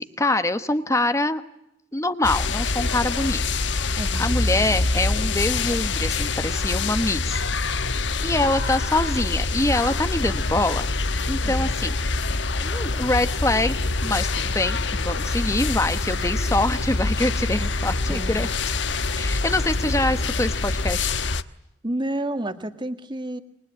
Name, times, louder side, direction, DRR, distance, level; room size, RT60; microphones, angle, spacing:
voice 1, 0.0-1.4 1.9-3.4 4.1-7.4 8.2-10.8 11.3-11.9 12.6-14.8 15.0-18.5 19.2-21.1, left 2 dB, 15° left, 11 dB, 1.1 m, -24 dB
sound 1, 2.2-21.4, left 3 dB, 70° left, 1.1 m, -25 dB
voice 2, 4.0-4.3 11.4-11.8 18.1-18.5 21.8-23.4, right 1 dB, 25° right, 9 dB, 1.9 m, -30 dB
27.5 x 24.5 x 8.8 m, 0.84 s
head